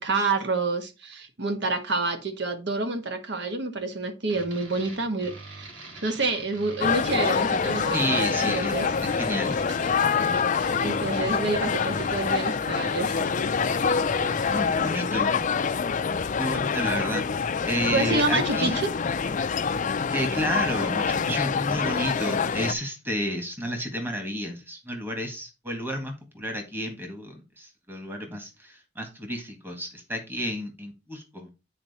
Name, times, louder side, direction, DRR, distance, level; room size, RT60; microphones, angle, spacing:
voice 1, 0.0-5.7 6.0-8.9 10.8-13.2 17.9-18.9, right 3 dB, 65° right, 1.3 m, -28 dB
sound 1, 4.3-14.6, right 3 dB, 90° right, 3.1 m, -43 dB
sound 2, 6.8-22.7, left 5 dB, 40° left, 0.5 m, -26 dB
voice 2, 7.9-9.9 14.5-15.4 16.4-18.8 20.1-31.5, equal, 10° right, 1.7 m, -31 dB
8.8 x 4.4 x 4.2 m
head